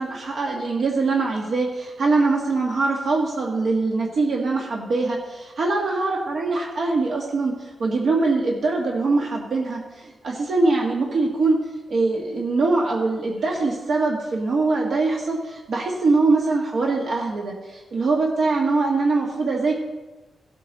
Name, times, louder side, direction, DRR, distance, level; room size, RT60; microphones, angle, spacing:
voice 1, 0.0-11.6 11.9-19.7, right 3 dB, 60° right, -2 dB, 1.6 m, -23 dB
16.5 x 8.2 x 4.1 m, 1.1 s
wide cardioid pair, 135°, 0 cm